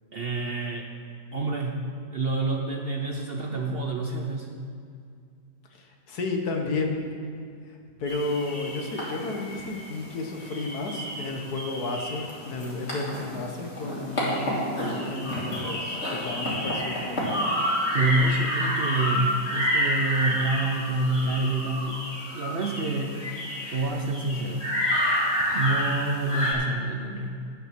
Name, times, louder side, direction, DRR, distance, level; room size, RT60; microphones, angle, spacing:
voice 1, 0.1-0.9 1.3-1.8 2.1-4.5 17.9-22.0 22.3-23.2 23.7-24.7 25.5-27.4, right 2 dB, 50° right, 1 dB, 0.7 m, -27 dB
voice 2, 5.7-6.9 7.7-17.5, left 3 dB, 70° left, 2 dB, 1.7 m, -32 dB
sound 1, 8.1-26.5, equal, 40° left, 3.0 m, -29 dB
11.0 x 8.9 x 6.0 m, 2.3 s
omnidirectional pair, 1.7 m